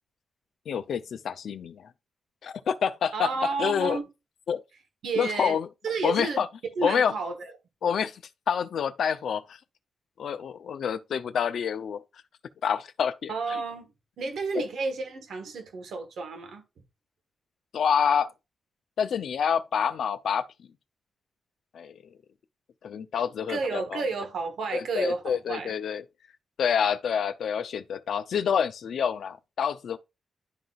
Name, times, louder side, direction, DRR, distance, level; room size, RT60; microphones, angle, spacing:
voice 1, 0.7-1.9 2.4-4.0 4.5-4.6 5.2-5.7 6.0-6.5 6.8-7.1 7.8-9.6 10.2-12.0 12.6-13.6 14.5-14.6 17.7-18.3 19.0-20.5 21.7-22.1 22.8-24.0 24.7-26.0 26.6-30.0, left 7 dB, 75° left, 0.5 m, -27 dB
voice 2, 3.1-4.1 5.0-5.6 5.8-6.4 6.8-7.5 13.3-13.9 14.2-16.6 23.5-25.7, right 4 dB, 80° right, 1.3 m, -31 dB
11.5 x 3.9 x 2.4 m
cardioid pair, 70°, 0 cm